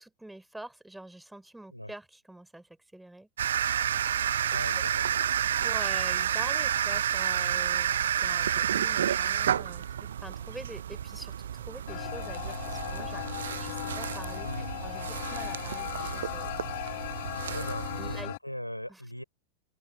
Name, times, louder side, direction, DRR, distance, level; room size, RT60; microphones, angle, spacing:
voice 1, 0.0-3.3 4.7-4.8 5.5-16.6 18.0-18.3 18.9-19.0, right 1 dB, 5° right, 4.1 m, -45 dB
sound 1, 3.4-18.2, right 9 dB, 65° right, 0.5 m, -30 dB
voice 2, 4.5-5.3 7.4-7.6 10.4-10.5 14.4-14.8 17.4-19.2, equal, 90° left, 5.8 m, -39 dB
sound 2, 11.9-18.4, left 20 dB, 50° left, 1.3 m, -37 dB
open air
figure-of-eight pair, 90°, 0 cm